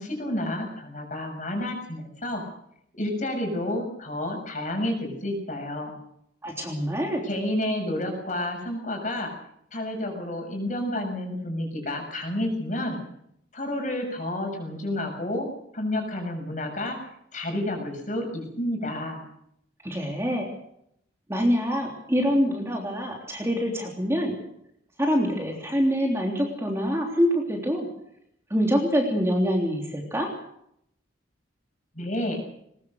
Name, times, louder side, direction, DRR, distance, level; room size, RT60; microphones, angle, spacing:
voice 1, 0.0-2.4 3.0-5.9 7.2-9.3 9.7-13.0 13.5-15.5 15.7-17.0 17.3-19.2 32.0-32.4, left 1 dB, 40° left, 3 dB, 7.0 m, -30 dB
voice 2, 6.4-7.2 19.8-20.5 21.3-24.4 25.0-27.9 28.5-30.3, equal, 15° right, 0 dB, 3.2 m, -25 dB
21.5 x 20.5 x 6.6 m, 0.73 s
head